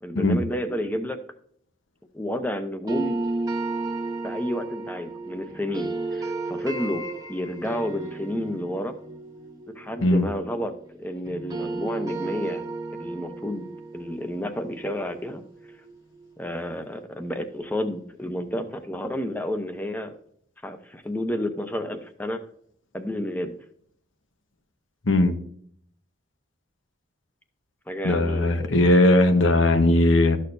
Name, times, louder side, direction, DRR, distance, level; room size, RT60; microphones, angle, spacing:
voice 1, 0.0-1.2 2.1-3.2 4.2-9.0 9.7-12.6 13.0-13.7 13.9-15.4 16.4-20.2 20.6-22.4 22.9-23.6 27.9-28.8, left 1 dB, 10° left, 0.8 m, -30 dB
sound 1, 2.9-11.0 11.3-16.2, right 3 dB, 20° right, 1.0 m, -33 dB
voice 2, 28.0-30.4, left 1 dB, 90° left, 1.1 m, -19 dB
13.0 x 6.5 x 2.7 m
head